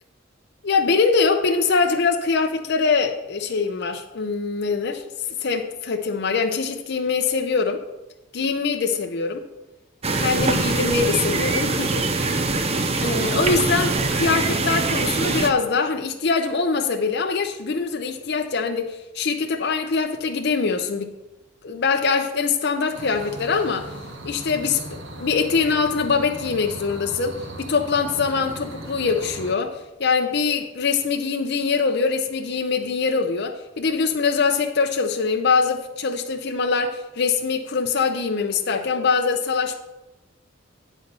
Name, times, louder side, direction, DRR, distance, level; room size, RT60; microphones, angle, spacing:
voice 1, 0.6-5.0 5.4-7.8 8.3-9.4 10.2-12.6 13.0-21.1 21.6-23.9 24.2-24.8 25.2-39.8, left 5 dB, 55° left, 4 dB, 0.6 m, -23 dB
sound 1, 10.0-15.5, right 3 dB, 30° right, 0.5 m, -23 dB
sound 2, 22.9-29.5, right 1 dB, 65° right, 1.4 m, -38 dB
9.5 x 4.0 x 6.7 m, 1.0 s
head